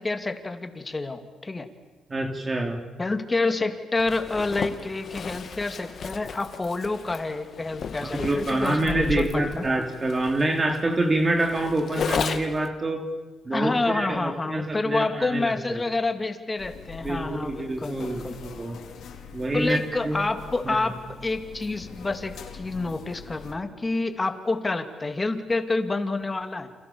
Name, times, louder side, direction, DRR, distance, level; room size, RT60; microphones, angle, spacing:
voice 1, 0.0-1.7 3.0-9.6 13.5-18.4 19.5-21.0 21.2-26.7, left 3 dB, 20° left, 8 dB, 2.8 m, -28 dB
voice 2, 2.1-2.9 8.0-13.1 13.4-15.8 17.0-18.8 19.3-19.8 20.0-20.2 20.6-20.9, right 1 dB, 25° right, 4 dB, 3.0 m, -26 dB
Zipper (clothing), 4.0-12.7, left 6 dB, 55° left, 2.2 m, -34 dB
sound 1, 16.6-23.5, left 5 dB, 75° left, 4.5 m, -43 dB
29.5 x 27.5 x 7.2 m, 1.3 s
cardioid pair, 90°, 0 cm